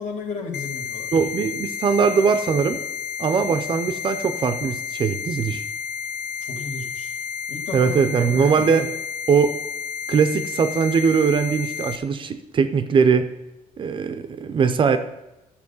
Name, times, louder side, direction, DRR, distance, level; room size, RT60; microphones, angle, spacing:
voice 1, 0.0-1.1 6.4-7.1 7.5-8.7, left 4 dB, 55° left, 3 dB, 1.8 m, -34 dB
sound 1, 0.5-12.0, left 7 dB, 80° left, 0.6 m, -31 dB
voice 2, 1.1-2.8 3.2-5.6 7.7-8.9 9.3-9.6 10.1-13.3 13.8-15.0, right 6 dB, 35° right, 10 dB, 0.6 m, -20 dB
12.0 x 7.0 x 5.4 m, 0.98 s
cardioid pair, 165°, 15 cm